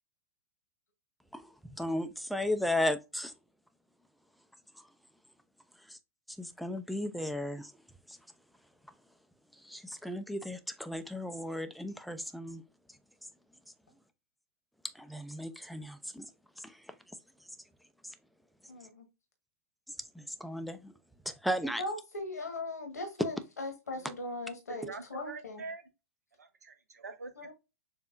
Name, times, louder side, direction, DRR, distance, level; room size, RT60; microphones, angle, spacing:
voice 1, 1.8-3.3 6.4-7.7 9.6-12.6 15.0-16.3 16.6-16.7 20.2-20.9 21.3-21.8, left 1 dB, ahead, 0.6 m, -35 dB
voice 2, 18.7-19.1 21.8-25.6 27.4-27.5, left 2 dB, 90° left, 1.5 m, -39 dB
voice 3, 24.7-25.8 26.4-27.5, right 3 dB, 85° right, 1.1 m, -45 dB
6.9 x 2.8 x 2.5 m
hypercardioid pair, 105°, 8 cm